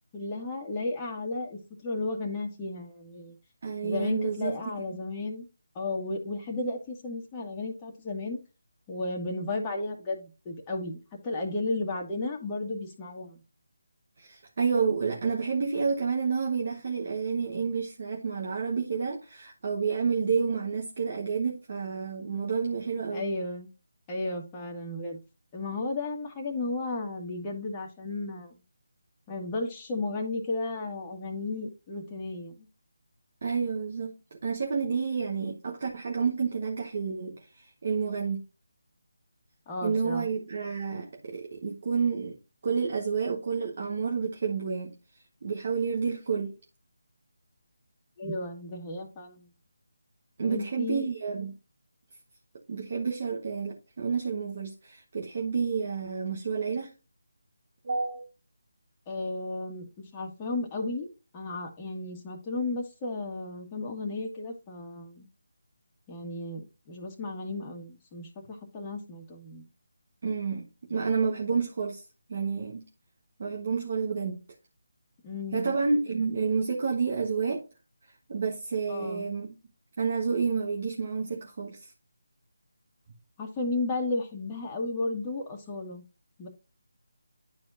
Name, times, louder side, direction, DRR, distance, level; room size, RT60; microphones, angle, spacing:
voice 1, 0.1-3.3 3.8-5.4 5.8-8.4 8.9-11.0 11.2-13.4 23.1-23.7 24.1-25.2 25.5-28.5 29.3-32.7 39.7-40.3 48.2-49.5 50.4-51.0 59.1-61.1 61.3-65.3 66.1-69.6 75.2-75.7 78.9-79.3 83.4-86.0 86.4-86.5, left 2 dB, 20° left, 1.7 m, -34 dB
voice 2, 3.6-4.6 14.2-23.2 33.4-34.1 34.4-38.4 39.8-42.4 42.6-44.9 45.4-46.5 50.4-51.5 52.7-56.9 57.8-58.2 70.2-72.0 72.3-72.8 73.4-74.4 75.5-77.6 78.3-79.5 80.0-81.9, right 5 dB, 45° right, 1.4 m, -29 dB
11.5 x 4.3 x 2.7 m
figure-of-eight pair, 160°, 0 cm